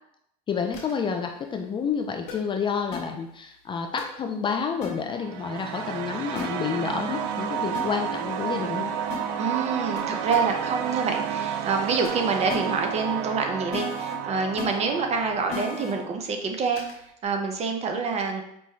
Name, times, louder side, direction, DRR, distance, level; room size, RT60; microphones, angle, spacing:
voice 1, 0.5-8.9, left 6 dB, 25° left, 4 dB, 0.3 m, -29 dB
sound 1, 0.7-0.9 2.3-2.4 2.9-3.0 4.0-4.1 4.8-4.9 6.4-6.5 7.7-7.8 9.1-9.2 10.0-10.1 10.3-10.4 12.0-12.1 12.5-12.6 13.7-14.1 14.6-14.7 15.5-15.9 16.8-16.9, left 4 dB, 80° left, 1.2 m, -34 dB
sound 2, 5.1-16.1, right 8 dB, 70° right, 0.4 m, -31 dB
voice 2, 9.4-16.8 17.2-18.4, right 4 dB, 35° right, 4 dB, 0.6 m, -27 dB
5.2 x 2.2 x 3.1 m, 0.77 s
supercardioid pair, 115°, 19 cm